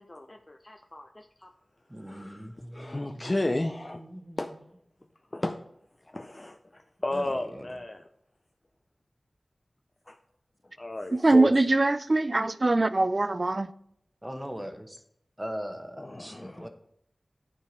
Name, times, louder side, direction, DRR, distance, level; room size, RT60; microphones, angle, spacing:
voice 1, 0.0-1.5 2.0-4.0 4.4-4.5 5.3-5.6 6.0-8.1 10.1-10.2 10.8-11.5 16.0-16.7, left 1 dB, 30° left, 0.5 m, -33 dB
voice 2, 1.9-4.4 7.1-7.7 14.2-15.0 15.4-16.7, equal, 15° right, 1.0 m, -40 dB
voice 3, 11.1-13.7, right 2 dB, 40° right, 0.4 m, -23 dB
10.0 x 4.7 x 5.2 m
wide cardioid pair, 80°, 0 cm